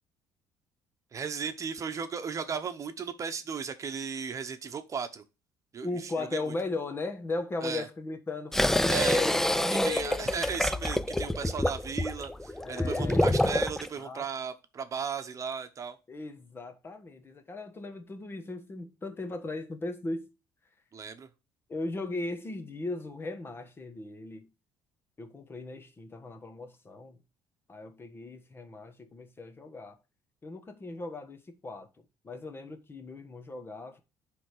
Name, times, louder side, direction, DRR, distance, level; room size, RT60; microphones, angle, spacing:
voice 1, 1.1-5.2 5.7-6.5 7.6-7.9 8.9-9.2 9.8-16.0 20.9-21.3, right 6 dB, 40° right, 1.0 m, -36 dB
voice 2, 5.8-10.5 12.6-13.4 14.0-14.2 16.1-20.3 21.7-24.5 25.2-27.2 27.7-30.0 30.4-31.9 32.2-34.0, left 3 dB, 30° left, 1.3 m, -37 dB
sound 1, 8.5-13.9, left 1 dB, 5° left, 0.5 m, -27 dB
9.9 x 3.6 x 4.9 m
supercardioid pair, 80°, 8 cm